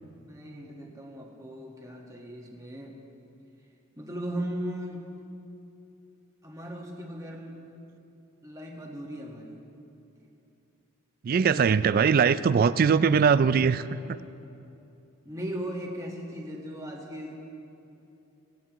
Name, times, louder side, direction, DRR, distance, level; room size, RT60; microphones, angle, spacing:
voice 1, 0.2-3.0 4.0-5.1 6.4-7.6 8.4-9.6 11.4-12.0 15.2-17.4, equal, 15° right, -1 dB, 1.6 m, -38 dB
voice 2, 11.2-14.2, right 6 dB, 40° right, 15 dB, 0.3 m, -21 dB
17.5 x 17.0 x 3.1 m, 2.8 s
head